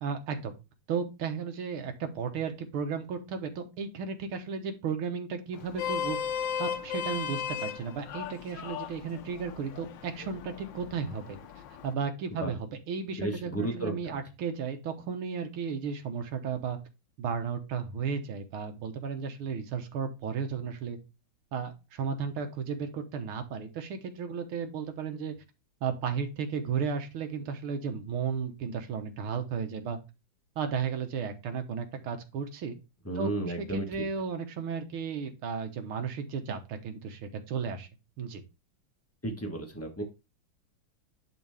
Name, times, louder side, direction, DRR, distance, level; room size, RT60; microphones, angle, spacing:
voice 1, 0.0-0.5 0.9-6.2 6.6-11.4 11.8-16.8 17.2-21.0 21.5-25.3 25.8-30.0 30.6-32.8 33.2-33.3 33.6-37.9 38.2-38.4, right 6 dB, 85° right, 6 dB, 2.0 m, -34 dB
Vehicle horn car horn honking, 5.5-11.9, left 8 dB, 65° left, 1.3 m, -36 dB
voice 2, 13.2-14.1 33.0-34.0 39.2-40.0, right 2 dB, 10° left, 3 dB, 0.8 m, -33 dB
11.0 x 3.8 x 3.4 m, 0.27 s
omnidirectional pair, 2.3 m